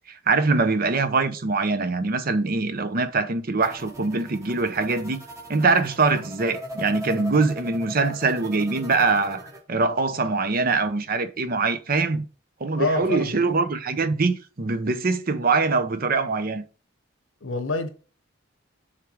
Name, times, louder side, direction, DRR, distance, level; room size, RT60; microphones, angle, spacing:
voice 1, 0.1-5.2 5.5-12.2 12.6-16.6, right 3 dB, 50° right, 0.7 m, -23 dB
sound 1, 3.6-9.6, left 1 dB, 15° right, 1.1 m, -39 dB
voice 2, 12.7-13.3 17.4-17.9, left 3 dB, 85° left, 1.0 m, -26 dB
6.5 x 3.7 x 4.7 m
head